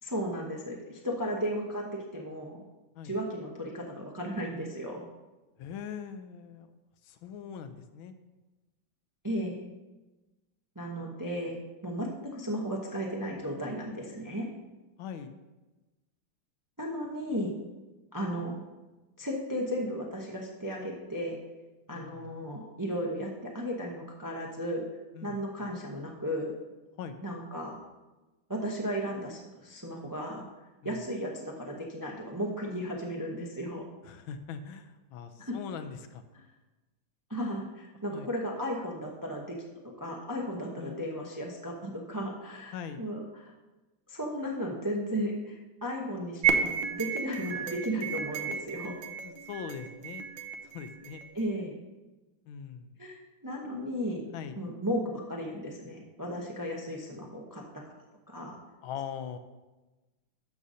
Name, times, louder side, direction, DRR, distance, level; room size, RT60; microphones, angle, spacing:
voice 1, 0.0-2.6 3.0-5.1 9.2-9.6 10.7-14.5 16.8-17.5 18.1-18.6 19.2-21.4 21.9-24.8 25.2-26.5 27.2-27.8 28.5-30.5 30.8-33.8 35.4-35.6 37.3-39.6 40.0-43.5 44.1-49.0 51.3-51.8 53.0-54.3 54.6-57.6 58.3-58.6, equal, 25° right, -1 dB, 0.4 m, -35 dB
voice 2, 5.6-6.7 7.0-8.1 15.0-15.3 21.9-22.3 25.1-25.7 27.0-27.2 30.8-31.0 34.0-36.2 38.1-38.3 40.8-41.1 42.7-43.0 49.2-50.3 50.6-51.2 52.5-53.0 53.6-54.0 54.3-54.6 58.8-59.4, left 7 dB, 85° left, 9 dB, 1.5 m, -41 dB
sound 1, 46.4-51.5, right 6 dB, 75° right, 1.4 m, -32 dB
12.5 x 6.3 x 2.7 m, 1.1 s
omnidirectional pair, 2.2 m